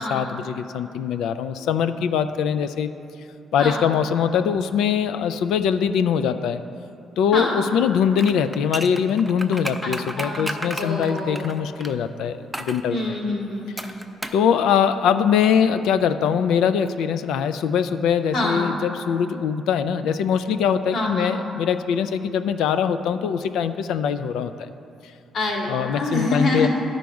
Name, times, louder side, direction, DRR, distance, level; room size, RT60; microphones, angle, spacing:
voice 1, 0.0-2.9 3.5-6.6 7.2-13.2 14.3-24.7 25.7-26.7, left 7 dB, 85° left, 10 dB, 0.3 m, -22 dB
voice 2, 3.6-3.9 7.3-7.6 9.8-11.5 12.9-13.9 18.3-18.8 20.9-21.4 25.3-26.7, left 2 dB, 60° left, -2 dB, 2.0 m, -26 dB
sound 1, 8.1-11.9 12.5-12.8 13.8-14.5 14.7-14.8, right 1 dB, 5° right, 0.5 m, -33 dB
12.0 x 5.2 x 4.7 m, 2.7 s
cardioid pair, 90°, 0 cm